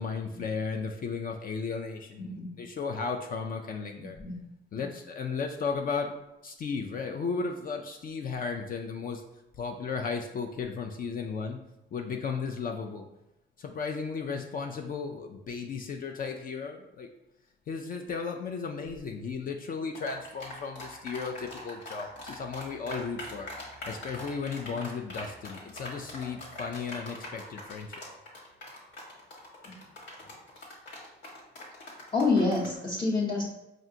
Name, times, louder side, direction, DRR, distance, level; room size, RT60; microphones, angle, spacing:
voice 1, 0.0-4.2 4.7-6.2 6.4-9.2 9.6-11.6 11.9-13.1 13.6-17.1 17.7-23.5 23.9-27.9, left 5 dB, 45° left, 3 dB, 0.4 m, -35 dB
voice 2, 2.2-2.5 4.0-4.3 29.6-29.8 32.1-33.5, left 3 dB, 25° left, -6 dB, 0.8 m, -28 dB
sound 1, 19.9-32.8, left 1 dB, 70° left, 1.5 m, -42 dB
4.9 x 2.5 x 2.7 m, 0.90 s
cardioid pair, 90°, 20 cm